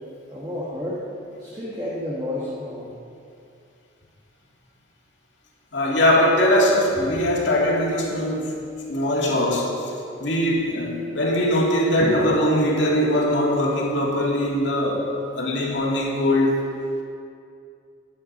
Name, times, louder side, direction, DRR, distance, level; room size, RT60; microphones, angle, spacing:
voice 1, 0.3-1.0 1.4-2.9, left 1 dB, 20° right, -7 dB, 1.4 m, -30 dB
voice 2, 5.7-8.5 8.9-9.9 10.2-16.6, left 1 dB, 80° left, -2 dB, 2.1 m, -21 dB
11.0 x 8.5 x 5.3 m, 2.5 s
head